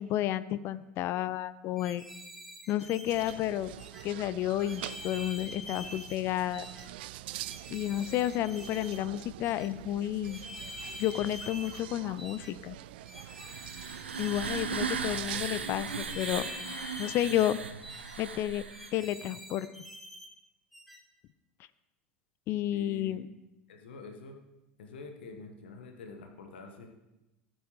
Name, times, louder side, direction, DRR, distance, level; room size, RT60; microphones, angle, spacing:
voice 1, 0.0-2.1 2.7-3.7 4.0-6.7 7.7-10.4 11.0-12.8 14.2-16.5 17.0-17.6 18.2-18.6 18.9-19.7 22.5-23.3, left 13 dB, 45° left, 16 dB, 0.5 m, -31 dB
sound 1, 1.8-3.4 3.8-4.0 4.6-6.2 6.5-6.9 7.4-9.0 9.4-9.7 10.2-11.8 12.2-12.5 13.1-14.7 15.1-15.3 15.9-17.5 17.8-18.2 18.7-20.3 20.7-21.0, left 1 dB, ahead, 1.4 m, -46 dB
sound 2, 3.0-15.7, right 15 dB, 60° right, 0.3 m, -45 dB
sound 3, 13.2-19.1, right 6 dB, 80° right, 0.7 m, -37 dB
voice 2, 22.7-23.2 23.7-24.4 24.8-27.0, left 3 dB, 70° left, 4 dB, 1.2 m, -46 dB
14.5 x 8.9 x 3.2 m, 0.98 s
figure-of-eight pair, 80°, 6 cm